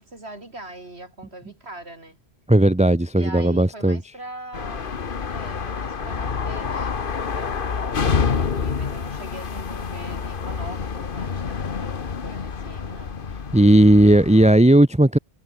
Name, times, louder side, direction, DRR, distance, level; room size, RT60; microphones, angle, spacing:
voice 1, 0.0-2.2 3.2-5.0 5.3-13.2, right 2 dB, 80° right, 6.0 m, -41 dB
voice 2, 2.5-4.0 13.5-15.2, right 1 dB, 5° right, 1.0 m, -15 dB
sound 1, 4.5-14.5, left 6 dB, 55° left, 1.4 m, -28 dB
omnidirectional pair, 1.1 m